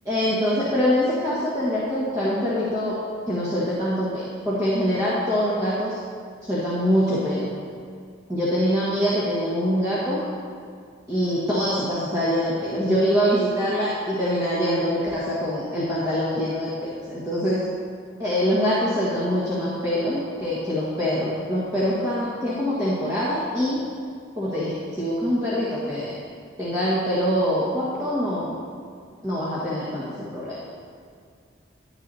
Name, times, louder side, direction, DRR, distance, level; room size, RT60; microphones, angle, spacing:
voice 1, 0.0-3.0 3.3-6.0 6.4-7.5 8.3-10.2 11.1-17.6 18.2-23.8 24.4-26.1 26.6-28.5 29.2-30.0 30.3-30.6, equal, 20° right, -9 dB, 1.5 m, -24 dB
11.5 x 9.9 x 2.7 m, 2.2 s
head